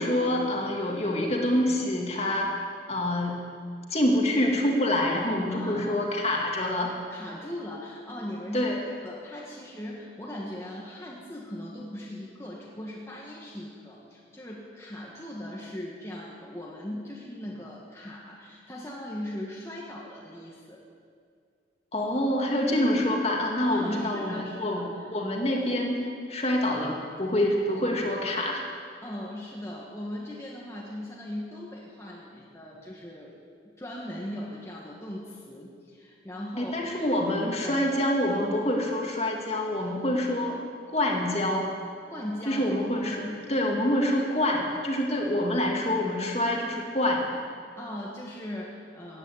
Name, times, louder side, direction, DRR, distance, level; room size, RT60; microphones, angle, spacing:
voice 1, 0.0-2.6 2.9-3.4 3.9-6.9 8.5-8.8 21.9-24.8 25.1-28.6 36.6-40.6 40.9-41.7 42.5-43.2 43.5-47.3, left 1 dB, 35° left, 0 dB, 2.1 m, -26 dB
voice 2, 5.5-6.1 7.1-8.7 9.0-20.8 23.7-25.0 29.0-33.4 33.8-36.7 37.6-37.8 42.1-42.7 43.1-43.4 47.8-49.2, left 1 dB, 15° left, -4 dB, 1.6 m, -39 dB
15.0 x 9.6 x 9.3 m, 2.2 s
head